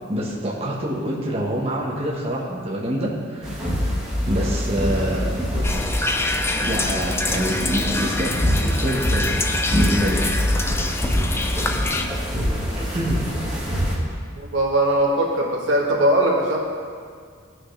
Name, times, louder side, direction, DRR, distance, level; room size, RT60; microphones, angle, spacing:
voice 1, 0.1-3.7 4.3-5.3 6.6-9.3 9.7-10.3 12.8-13.2, equal, 30° right, -5 dB, 1.3 m, -26 dB
sound 1, 3.4-13.9, equal, 5° right, 1.8 m, -25 dB
sound 2, 5.6-12.1, left 2 dB, 10° left, 0.4 m, -25 dB
voice 2, 14.4-16.6, right 1 dB, 70° right, -2 dB, 1.4 m, -20 dB
16.0 x 6.1 x 3.4 m, 2.1 s
head